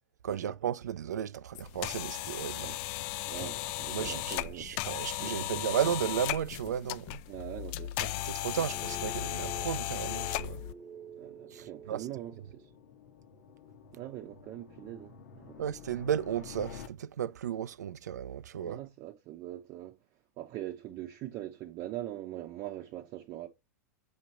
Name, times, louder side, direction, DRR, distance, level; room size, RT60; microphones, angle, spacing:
voice 1, 0.2-2.7 3.9-7.2 8.3-10.6 11.5-12.1 15.6-18.8, right 9 dB, 75° right, 0.4 m, -34 dB
sound 1, 1.6-10.7, left 16 dB, 45° left, 0.4 m, -36 dB
voice 2, 3.3-4.7 5.2-5.7 7.3-8.1 11.2-12.7 13.9-15.7 18.6-20.0 20.4-23.5, right 14 dB, 40° right, 0.7 m, -42 dB
sound 2, 7.2-16.9, left 7 dB, 65° left, 1.1 m, -53 dB
sound 3, 8.5-12.7, right 6 dB, 10° right, 0.8 m, -48 dB
7.2 x 3.1 x 4.3 m
hypercardioid pair, 100°, 9 cm